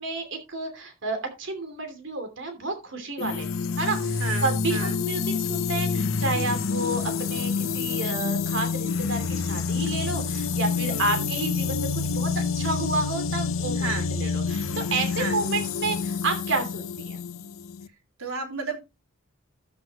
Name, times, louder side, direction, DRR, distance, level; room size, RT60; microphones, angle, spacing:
voice 1, 0.0-3.5 3.8-17.2, right 2 dB, 60° right, 7 dB, 2.8 m, -30 dB
sound 1, 3.2-17.9, left 5 dB, 70° left, 0.8 m, -28 dB
voice 2, 4.2-5.0 10.9-11.3 13.7-14.1 15.1-15.4 18.2-18.8, right 4 dB, 80° right, 4 dB, 3.2 m, -33 dB
13.5 x 8.1 x 3.0 m, 0.25 s
head